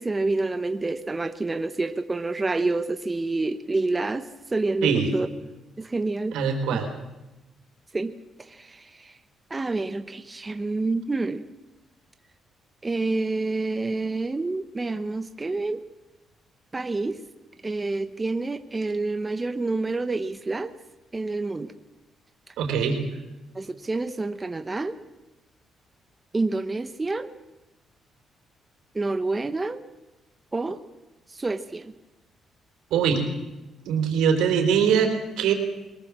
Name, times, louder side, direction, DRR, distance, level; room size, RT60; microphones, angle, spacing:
voice 1, 0.0-5.3 5.8-6.4 6.7-6.8 7.9-9.2 9.5-11.5 12.8-15.8 16.7-17.2 17.6-20.7 21.1-21.7 22.5-22.6 23.5-25.0 26.3-27.3 28.9-29.8 30.5-30.8 31.3-31.9, right 3 dB, 20° right, 9 dB, 1.0 m, -28 dB
voice 2, 6.3-6.9 22.6-23.0 32.9-33.2 33.9-35.5, right 7 dB, 90° right, 4 dB, 4.0 m, -22 dB
22.0 x 19.5 x 7.5 m, 1.0 s
cardioid pair, 90°, 0 cm